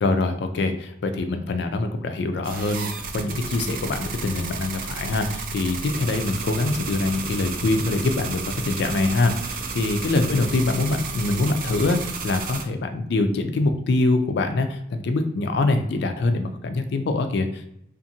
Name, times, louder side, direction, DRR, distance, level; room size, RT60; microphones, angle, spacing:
voice 1, 0.0-17.7, left 2 dB, 60° left, 7 dB, 0.4 m, -24 dB
sound 1, 2.4-12.6, right 4 dB, 50° right, 0.4 m, -32 dB
2.5 x 2.5 x 2.7 m, 0.76 s
head